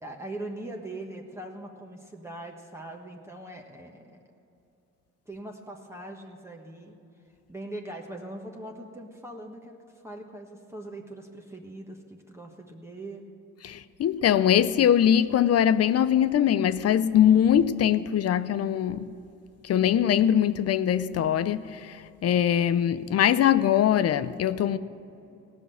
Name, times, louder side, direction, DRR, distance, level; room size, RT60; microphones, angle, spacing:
voice 1, 0.0-4.2 5.3-6.9 7.5-13.2, right 1 dB, 10° right, 1.3 m, -41 dB
voice 2, 13.6-19.1 19.6-24.8, left 10 dB, 55° left, 0.6 m, -22 dB
18.0 x 6.1 x 9.2 m
cardioid pair, 90°, 30 cm